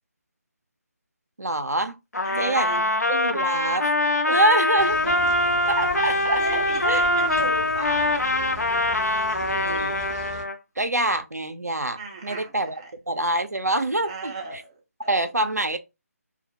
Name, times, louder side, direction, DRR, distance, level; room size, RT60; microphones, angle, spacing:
voice 1, 1.4-2.0 2.4-3.9 4.3-5.0 5.7-7.0 9.4-10.0 10.8-12.7 13.1-14.3 15.1-15.8, right 1 dB, 85° right, 0.4 m, -25 dB
Trumpet, 2.1-10.6, left 2 dB, 85° left, 0.5 m, -23 dB
voice 2, 2.2-2.9 4.2-4.4 5.0-5.2 6.0-8.6 11.9-12.9 14.0-15.2, right 3 dB, 20° right, 0.4 m, -37 dB
sound 1, 4.8-10.4, right 1 dB, 10° left, 0.7 m, -38 dB
2.2 x 2.0 x 2.7 m
figure-of-eight pair, 150°, 9 cm